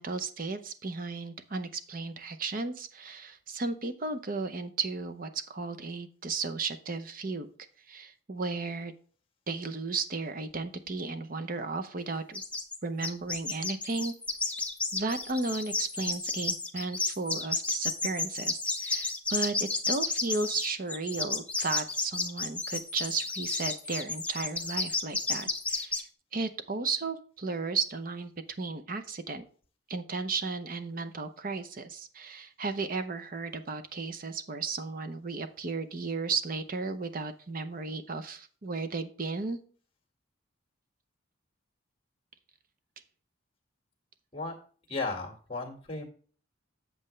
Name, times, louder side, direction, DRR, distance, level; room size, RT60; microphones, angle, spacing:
voice 1, 0.0-7.5 7.9-8.9 9.5-12.4 12.8-14.1 14.9-26.1 26.3-28.3 28.6-29.5 29.9-39.6, right 4 dB, 45° right, 9 dB, 0.7 m, -34 dB
sound 1, 12.3-12.8 13.0-26.0, left 3 dB, 5° left, 0.6 m, -32 dB
voice 2, 44.9-46.0, left 3 dB, 25° left, 2 dB, 1.8 m, -35 dB
7.8 x 7.7 x 3.2 m, 0.43 s
head